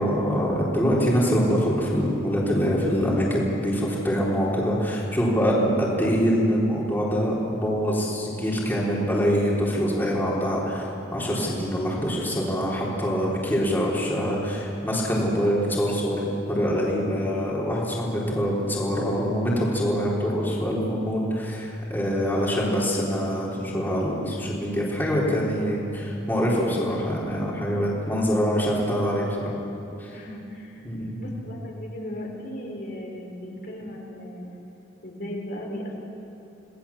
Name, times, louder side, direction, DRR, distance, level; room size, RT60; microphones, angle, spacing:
voice 1, 0.0-29.5 30.0-30.1 30.8-31.2, equal, 10° left, -5 dB, 3.8 m, -24 dB
voice 2, 26.7-27.0 27.7-28.2 30.1-30.9 31.2-34.6 35.0-35.9, equal, 50° left, -1 dB, 3.7 m, -37 dB
28.0 x 19.0 x 7.2 m, 2.9 s
head